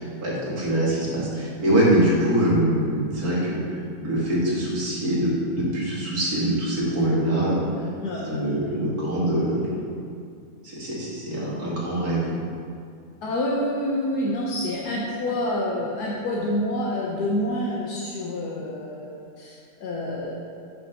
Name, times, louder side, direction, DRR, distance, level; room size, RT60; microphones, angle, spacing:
voice 1, 0.0-7.6 8.2-9.7 10.6-12.4, right 1 dB, 65° right, -6 dB, 2.7 m, -24 dB
voice 2, 8.0-8.4 13.2-20.3, left 1 dB, 75° left, -4 dB, 1.6 m, -27 dB
8.8 x 5.8 x 5.9 m, 2.4 s
omnidirectional pair, 1.7 m